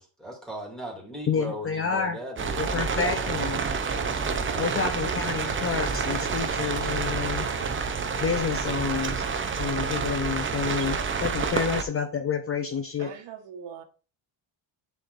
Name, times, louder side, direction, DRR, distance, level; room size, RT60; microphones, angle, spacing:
voice 1, 0.0-3.3 4.3-4.8, equal, ahead, 2.6 m, -38 dB
voice 2, 1.3-2.2 2.6-3.6 4.6-7.5 8.2-9.2 9.6-13.1, left 6 dB, 30° left, 0.6 m, -29 dB
sound 1, 2.4-11.8, right 5 dB, 25° right, 0.6 m, -28 dB
voice 3, 10.6-11.0 13.0-13.8, right 7 dB, 70° right, 1.3 m, -42 dB
10.0 x 4.3 x 2.6 m
cardioid pair, 130°, 46 cm